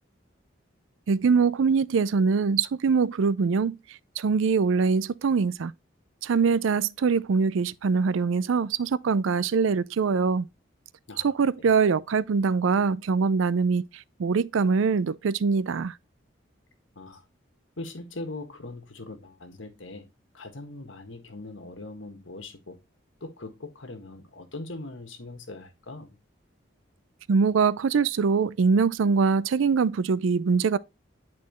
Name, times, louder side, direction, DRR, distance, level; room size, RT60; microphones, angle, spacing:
voice 1, 1.1-3.8 4.2-5.7 6.2-10.5 11.2-15.9 27.3-30.8, right 5 dB, 80° right, 0.4 m, -23 dB
voice 2, 11.1-11.7 16.9-17.2 17.8-20.1 20.3-22.8 23.2-26.2, left 2 dB, 75° left, 1.6 m, -41 dB
10.5 x 4.3 x 3.0 m
head